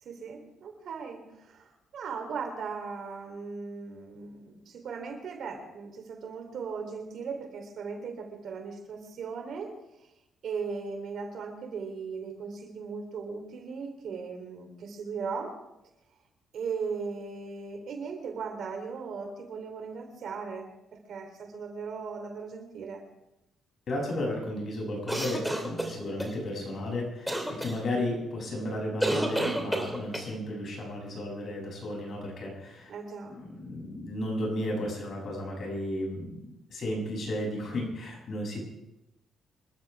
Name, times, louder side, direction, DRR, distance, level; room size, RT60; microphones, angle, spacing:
voice 1, 0.0-9.7 10.4-15.6 16.5-20.7 21.1-23.0 32.9-33.4, right 5 dB, 65° right, 4 dB, 3.4 m, -38 dB
voice 2, 23.9-32.9 33.3-38.6, left 1 dB, 55° left, -1 dB, 7.6 m, -34 dB
sound 1, 25.1-26.3 27.3-27.7 29.0-30.3, right 1 dB, ahead, 3.4 m, -30 dB
26.5 x 13.0 x 3.5 m, 0.92 s
cardioid pair, 90°, 0 cm